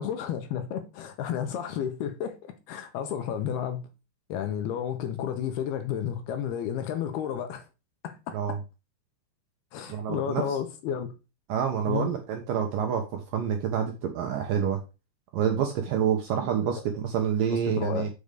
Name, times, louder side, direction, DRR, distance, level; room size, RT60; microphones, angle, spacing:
voice 1, 0.0-3.9 4.3-7.6 8.0-8.6 9.7-11.1 11.9-12.1 16.6-16.8 17.5-18.1, left 9 dB, 75° left, 2.7 m, -32 dB
voice 2, 9.9-10.6 11.5-14.8 15.3-18.1, right 8 dB, 70° right, 2.2 m, -27 dB
7.1 x 5.2 x 6.6 m
omnidirectional pair, 5.2 m